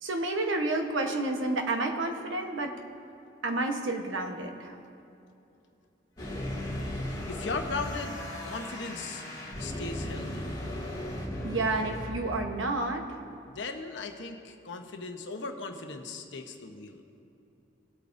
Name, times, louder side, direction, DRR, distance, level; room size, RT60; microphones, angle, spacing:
voice 1, 0.0-2.7 3.4-4.8 11.4-13.1, right 2 dB, 85° right, 4 dB, 1.1 m, -30 dB
sound 1, 6.2-12.1, left 1 dB, 20° left, 2.2 m, -36 dB
voice 2, 7.1-9.2 9.6-10.6 13.5-17.0, left 3 dB, 70° left, 5 dB, 0.9 m, -38 dB
19.0 x 8.3 x 2.6 m, 2.7 s
head